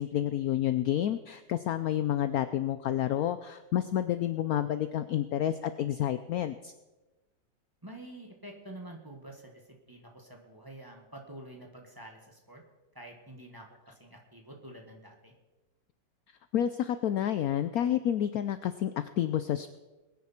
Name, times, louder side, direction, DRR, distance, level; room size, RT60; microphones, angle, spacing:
voice 1, 0.0-6.7 16.5-19.8, left 11 dB, 70° left, 11 dB, 0.9 m, -29 dB
voice 2, 7.8-9.6 9.9-12.6 12.9-15.3, right 1 dB, 10° right, 1 dB, 1.7 m, -48 dB
21.0 x 9.6 x 4.4 m, 1.1 s
omnidirectional pair, 1.9 m